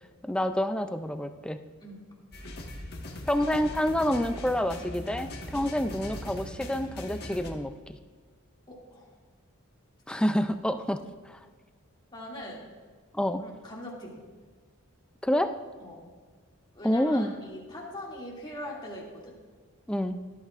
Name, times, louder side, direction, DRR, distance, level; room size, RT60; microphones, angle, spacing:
voice 1, 0.2-1.6 3.3-8.0 10.1-11.4 13.1-13.4 15.2-15.6 16.8-17.3 19.9-20.2, left 1 dB, 5° left, 8 dB, 0.4 m, -28 dB
sound 1, 2.3-7.5, left 1 dB, 50° left, 1.6 m, -40 dB
voice 2, 8.7-9.1 12.1-12.7 13.4-14.3 15.8-16.0 16.7-19.3, left 1 dB, 20° left, -4 dB, 2.5 m, -42 dB
17.0 x 12.0 x 2.5 m, 1.5 s
head